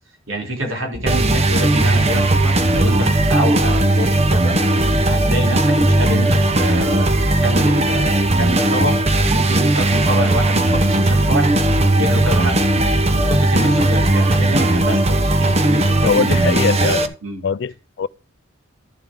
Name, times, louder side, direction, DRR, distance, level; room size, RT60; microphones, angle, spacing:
voice 1, 0.3-4.5 5.0-7.1 7.4-11.6 12.0-12.6 13.1-17.4, equal, 85° right, 3.4 m, -26 dB
sound 1, 0.9-14.8, equal, 5° left, 2.0 m, -31 dB
sound 2, 1.1-17.1, right 2 dB, 30° right, 0.8 m, -17 dB
voice 2, 16.0-17.1 17.4-18.1, left 5 dB, 60° left, 0.4 m, -21 dB
12.0 x 7.4 x 3.8 m
head